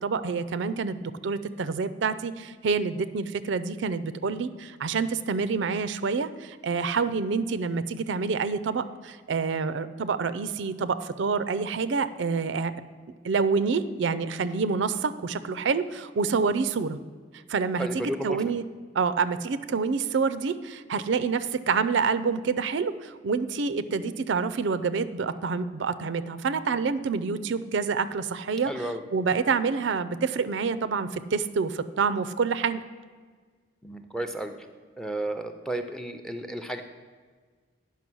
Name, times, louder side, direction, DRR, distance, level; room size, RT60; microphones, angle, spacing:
voice 1, 0.0-12.7 13.2-17.0 17.5-18.6 18.9-32.8, right 5 dB, 70° right, 13 dB, 0.4 m, -27 dB
voice 2, 17.8-18.4 28.7-29.0 33.8-34.5 35.0-36.8, right 1 dB, 5° left, 7 dB, 0.5 m, -32 dB
9.8 x 5.7 x 6.1 m, 1.5 s
head